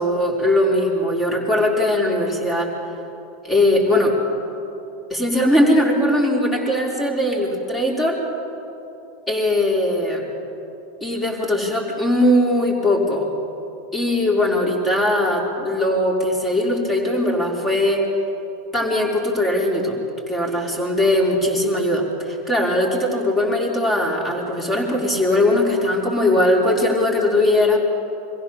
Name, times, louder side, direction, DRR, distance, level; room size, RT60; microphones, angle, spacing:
voice 1, 0.0-2.7 3.4-4.1 5.1-8.2 9.3-10.2 11.0-13.3 13.9-18.1 18.7-20.0 20.3-27.8, left 1 dB, 20° left, -1 dB, 4.6 m, -20 dB
23.5 x 16.0 x 7.2 m, 2.8 s
hypercardioid pair, 95°, 0 cm